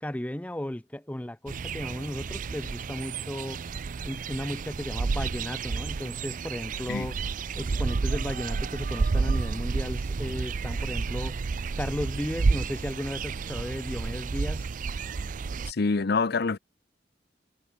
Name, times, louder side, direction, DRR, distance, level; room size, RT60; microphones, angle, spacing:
voice 1, 0.0-3.6 4.0-7.1 7.6-11.3 11.8-14.7, left 1 dB, 10° left, 0.6 m, -35 dB
sound 1, 1.5-15.7, right 4 dB, 50° right, 0.4 m, -30 dB
voice 2, 15.7-16.6, left 4 dB, 65° left, 0.7 m, -26 dB
head